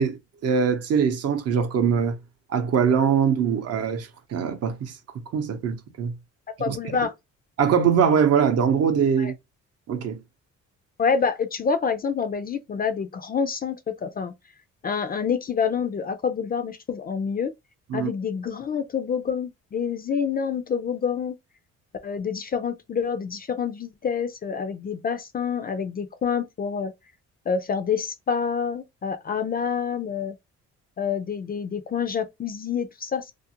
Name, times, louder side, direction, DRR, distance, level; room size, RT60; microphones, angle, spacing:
voice 1, 0.0-2.2 2.5-5.0 5.3-6.2 6.7-6.8 7.6-9.3 9.9-10.2 17.9-18.1, right 7 dB, 55° right, 0.6 m, -22 dB
voice 2, 6.6-7.1 9.2-9.3 11.0-14.3 14.8-17.5 17.9-21.4 22.0-26.9 27.5-30.4 31.0-33.3, left 6 dB, 30° left, 0.4 m, -27 dB
2.5 x 2.0 x 2.7 m
cardioid pair, 90°, 30 cm